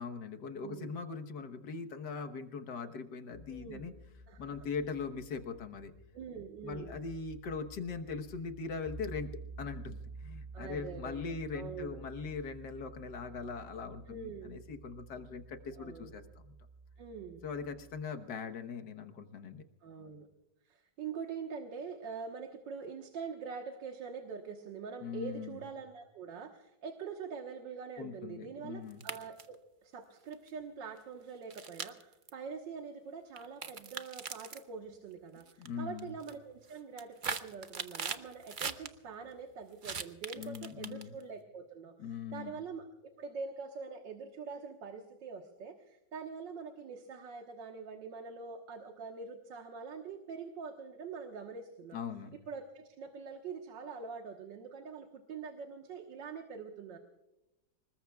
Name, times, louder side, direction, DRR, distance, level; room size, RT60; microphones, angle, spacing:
voice 1, 0.0-3.9 4.4-5.9 6.6-9.3 9.6-16.5 17.4-19.6 25.0-25.6 28.0-29.0 35.6-36.1 40.4-41.2 42.0-42.6 51.9-52.3, left 5 dB, 70° left, 7 dB, 1.8 m, -41 dB
voice 2, 0.6-1.0 3.5-3.9 4.3-4.6 6.1-7.0 10.5-12.0 14.1-14.5 15.8-16.2 17.0-17.4 19.8-20.3 20.6-52.0 52.5-57.0, right 5 dB, 85° right, 3 dB, 2.0 m, -44 dB
sound 1, 3.3-18.0, right 3 dB, 15° right, 3.8 m, -51 dB
sound 2, 28.9-29.6 30.3-30.5 31.5-32.3 33.4-34.6 35.4-35.7 36.0-36.3 36.8-38.9 39.8-41.2, right 5 dB, 45° right, 0.6 m, -40 dB
25.5 x 21.0 x 2.3 m, 0.97 s
omnidirectional pair, 2.0 m